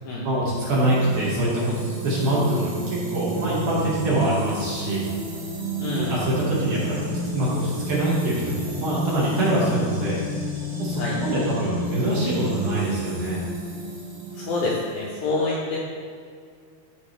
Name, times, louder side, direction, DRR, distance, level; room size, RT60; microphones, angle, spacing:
voice 1, 0.2-5.0 5.9-10.2 10.8-13.4, right 1 dB, 55° right, -8 dB, 2.9 m, -24 dB
sound 1, 0.6-15.3, equal, 75° right, 4.8 m, -31 dB
voice 2, 5.8-6.2 11.0-11.2 14.3-15.8, left 3 dB, 75° left, -5 dB, 2.2 m, -27 dB
13.5 x 5.3 x 3.3 m, 2.1 s
omnidirectional pair, 5.1 m